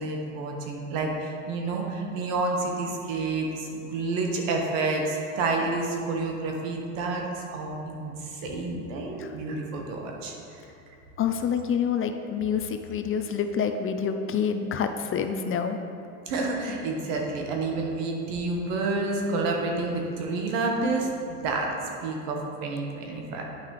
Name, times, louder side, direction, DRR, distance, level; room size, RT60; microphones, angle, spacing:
voice 1, 0.0-10.6 16.3-21.7 22.0-23.4, right 3 dB, 75° right, 1 dB, 1.4 m, -29 dB
voice 2, 11.2-15.8, left 7 dB, 35° left, 7 dB, 0.5 m, -27 dB
9.7 x 5.6 x 3.2 m, 2.9 s
supercardioid pair, 95°, 39 cm